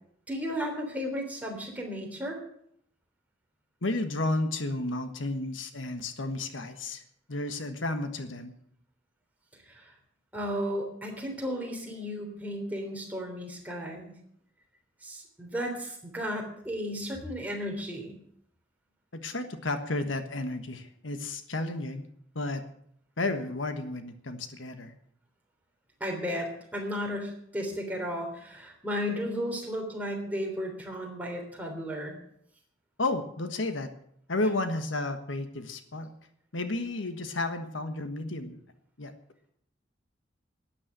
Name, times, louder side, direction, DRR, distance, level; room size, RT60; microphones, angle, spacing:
voice 1, 0.3-2.4 9.6-9.9 10.3-14.1 15.0-18.2 26.0-32.2, equal, 10° right, 0 dB, 3.4 m, -34 dB
voice 2, 3.8-7.0 7.3-8.5 19.1-22.1 22.3-22.6 23.2-24.9 33.0-33.9 34.3-36.1 36.5-38.6 39.0-39.1, left 2 dB, 90° left, 8 dB, 1.4 m, -32 dB
13.0 x 9.8 x 7.8 m, 0.68 s
head